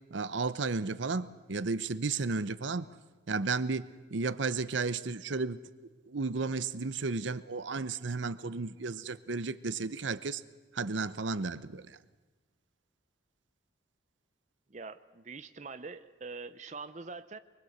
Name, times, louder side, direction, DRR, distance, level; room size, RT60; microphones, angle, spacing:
voice 1, 0.1-2.9 3.3-10.4 10.7-12.0, right 4 dB, 75° right, 15 dB, 0.8 m, -33 dB
voice 2, 14.7-17.4, right 4 dB, 40° right, 11 dB, 0.7 m, -44 dB
23.5 x 23.0 x 8.0 m, 1.3 s
head